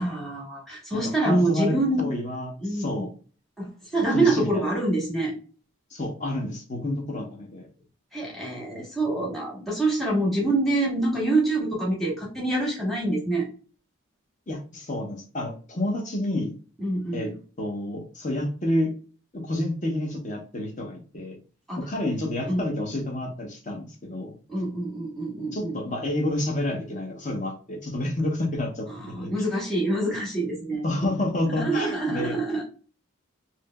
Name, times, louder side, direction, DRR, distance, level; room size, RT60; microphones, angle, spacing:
voice 1, 0.0-2.1 2.6-3.1 3.6-5.3 8.1-13.5 16.8-17.3 21.7-21.8 22.5-22.6 24.5-25.8 28.9-30.8 31.4-32.6, right 2 dB, ahead, -4 dB, 1.2 m, -26 dB
voice 2, 0.9-3.1 4.1-4.8 5.9-7.7 14.5-16.5 17.1-17.3 17.6-18.9 19.3-21.4 21.8-24.3 25.5-28.9 29.2-29.3 30.8-32.4, left 1 dB, 35° left, 2 dB, 0.9 m, -29 dB
3.4 x 2.7 x 2.2 m, 0.38 s
head